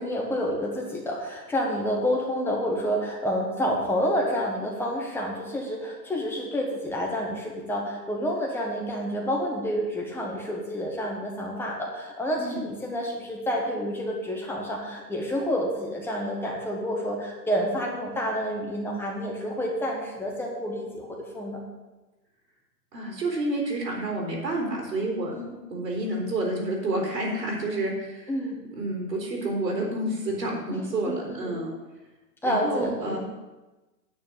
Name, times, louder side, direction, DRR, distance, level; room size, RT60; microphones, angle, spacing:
voice 1, 0.0-21.6 25.3-25.5 28.3-28.6 30.7-30.8 31.1-31.6 32.4-33.2, equal, 5° left, -2 dB, 1.3 m, -29 dB
voice 2, 22.9-25.3 25.7-28.3 28.7-31.7 32.4-33.2, right 1 dB, 85° right, -2 dB, 3.5 m, -29 dB
9.6 x 4.6 x 7.6 m, 1.1 s
hypercardioid pair, 145°, 50 cm